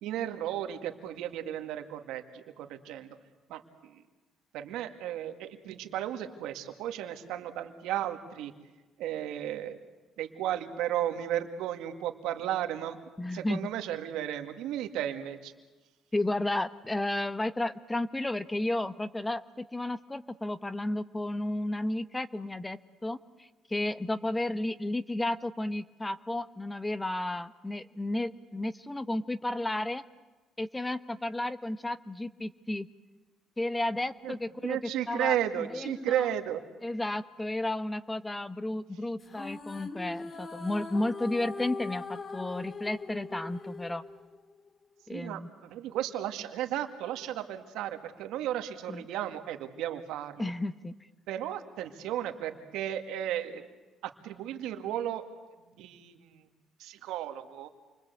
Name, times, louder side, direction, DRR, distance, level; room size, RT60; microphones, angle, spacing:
voice 1, 0.0-3.2 3.5-4.0 4.5-8.5 9.0-9.8 10.2-13.0 13.3-15.5 34.2-34.4 34.6-36.6 45.1-50.4 51.3-53.6 54.0-55.2 55.7-56.5 56.8-57.7, right 11 dB, 90° right, 7 dB, 2.1 m, -34 dB
voice 2, 13.2-13.6 16.1-30.0 30.6-32.9 33.6-34.8 35.1-35.4 35.7-36.3 36.8-44.0 45.1-45.5 48.9-49.0 50.4-50.9, left 1 dB, 10° left, 13 dB, 1.0 m, -33 dB
sound 1, 39.2-44.7, left 3 dB, 35° left, 2.1 m, -41 dB
28.5 x 23.5 x 8.2 m, 1.2 s
cardioid pair, 105°, 0 cm